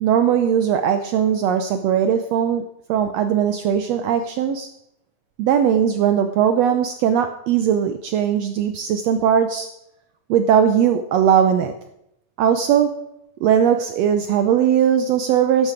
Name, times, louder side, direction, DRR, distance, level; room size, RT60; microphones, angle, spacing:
voice 1, 0.0-2.6 2.9-4.7 5.4-9.7 10.3-11.7 12.4-12.9 13.4-15.7, right 8 dB, 75° right, 8 dB, 1.6 m, -19 dB
12.0 x 11.0 x 4.9 m, 0.82 s
omnidirectional pair, 3.6 m